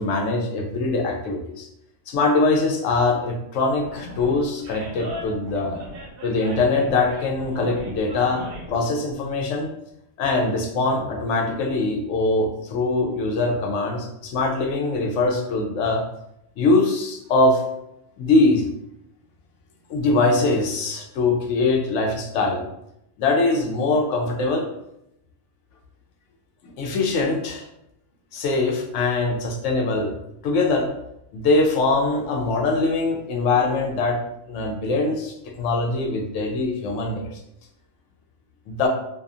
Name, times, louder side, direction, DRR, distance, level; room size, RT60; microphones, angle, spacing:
voice 1, 0.0-1.7 2.1-5.8 6.2-9.7 10.2-16.0 16.6-17.6 18.2-18.6 19.9-22.7 23.2-24.7 26.6-27.7 28.3-30.1 30.4-30.9 31.3-37.4 38.7-38.9, left 3 dB, 85° left, 2 dB, 0.9 m, -22 dB
Animal, 3.8-8.8, equal, 60° right, 0.8 m, -38 dB
2.7 x 2.3 x 2.3 m, 0.81 s
omnidirectional pair, 1.2 m